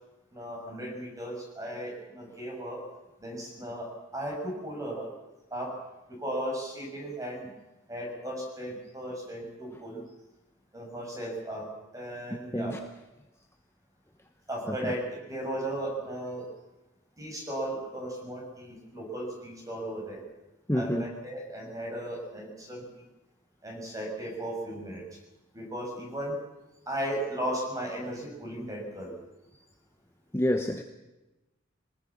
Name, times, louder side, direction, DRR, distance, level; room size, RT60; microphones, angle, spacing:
voice 1, 0.3-2.8 3.2-5.1 5.5-5.7 6.1-7.5 7.9-10.0 10.7-11.7 11.9-12.7 14.5-15.0 15.3-16.4 17.2-20.2 20.7-22.8 23.6-25.0 25.5-26.4 26.9-29.1, right 1 dB, 15° right, 0 dB, 6.7 m, -36 dB
voice 2, 12.3-12.8 14.8-14.9 20.7-21.0 30.3-30.8, left 1 dB, 15° left, 5 dB, 0.9 m, -28 dB
23.0 x 20.0 x 7.3 m, 1.0 s
head